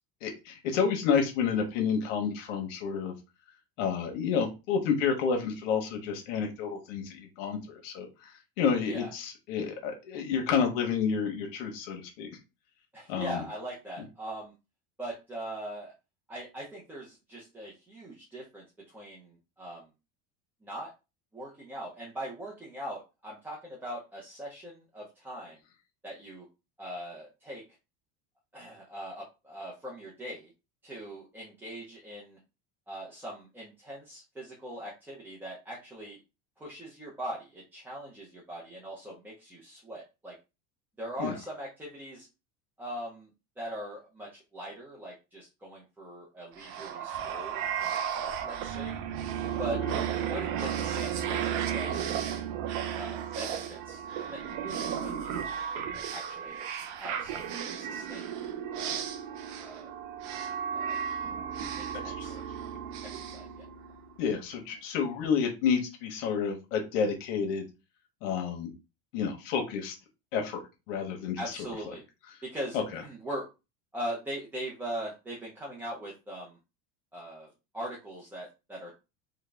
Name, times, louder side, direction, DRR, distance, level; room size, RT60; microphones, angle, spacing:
voice 1, 0.2-3.1 3.8-8.3 8.6-12.3 13.1-13.4 41.2-41.3 62.0-62.4 64.2-67.6 68.2-68.7 69.1-69.9 70.3-71.5 72.7-73.0, left 6 dB, 80° left, 3 dB, 1.1 m, -30 dB
voice 2, 8.8-9.1 12.9-14.5 15.0-15.9 16.3-19.9 20.6-20.9 21.3-25.6 26.0-26.5 26.8-27.6 28.5-30.5 30.8-32.4 32.9-36.2 36.6-40.3 41.0-42.3 42.8-43.3 43.6-49.0 49.6-49.8 50.1-52.0 52.9-55.5 55.9-56.6 57.0-57.5 57.8-58.4 58.7-59.0 59.6-59.9 60.7-61.0 61.8-62.4 63.0-63.7 71.4-72.0 72.4-73.5 73.9-76.6 77.1-78.9, right 1 dB, 5° right, -5 dB, 0.5 m, -41 dB
sound 1, 46.6-64.2, right 8 dB, 50° right, 0.5 m, -34 dB
3.9 x 2.2 x 3.4 m, 0.27 s
cardioid pair, 165°, 37 cm